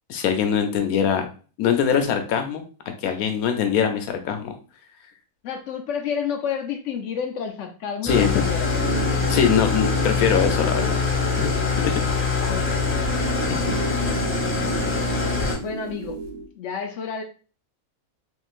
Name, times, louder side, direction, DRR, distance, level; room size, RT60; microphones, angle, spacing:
voice 1, 0.1-1.3 1.6-2.6 3.0-4.5 8.0-8.3 9.3-10.9 11.4-11.5 11.8-11.9, left 8 dB, 85° left, 7 dB, 1.1 m, -22 dB
voice 2, 5.4-8.8 12.4-13.3 15.1-16.2 16.6-17.2, left 7 dB, 65° left, 5 dB, 0.8 m, -31 dB
Engine starting / Idling, 8.1-15.6, left 4 dB, 15° left, 0.6 m, -24 dB
sound 1, 8.6-16.5, right 3 dB, 60° right, 1.2 m, -33 dB
3.7 x 3.1 x 2.4 m, 0.37 s
omnidirectional pair, 1.5 m